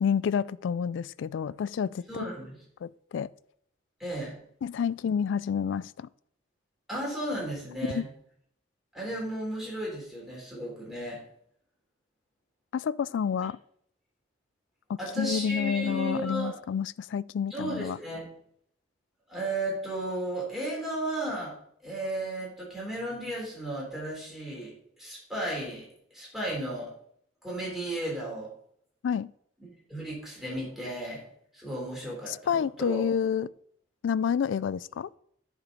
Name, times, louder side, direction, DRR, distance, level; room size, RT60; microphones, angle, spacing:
voice 1, 0.0-2.3 2.8-3.3 4.6-6.1 7.9-8.1 12.7-13.6 14.9-18.0 29.0-29.3 32.3-33.5 34.0-35.1, left 7 dB, 75° left, 0.3 m, -29 dB
voice 2, 2.1-2.6 4.0-4.3 6.9-8.1 8.9-11.2 15.0-16.6 17.5-18.3 19.3-21.5 21.8-26.9 27.4-28.5 29.9-31.2 31.5-33.0, right 1 dB, ahead, 3.7 m, -34 dB
10.5 x 5.0 x 5.2 m
head